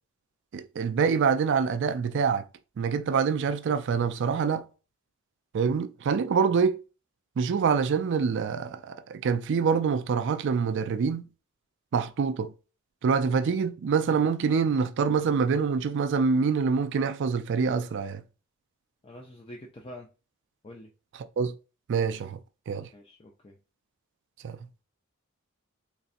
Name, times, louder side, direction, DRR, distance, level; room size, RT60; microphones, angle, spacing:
voice 1, 0.5-2.4 2.8-4.6 5.5-6.8 7.4-11.3 11.9-12.5 13.0-18.2 21.4-21.5 21.9-22.4 22.7-22.9 24.4-24.6, right 5 dB, 55° right, 0.4 m, -25 dB
voice 2, 19.0-20.1 20.6-20.9 22.9-23.6, left 1 dB, 25° left, 0.5 m, -46 dB
4.0 x 3.2 x 2.5 m
head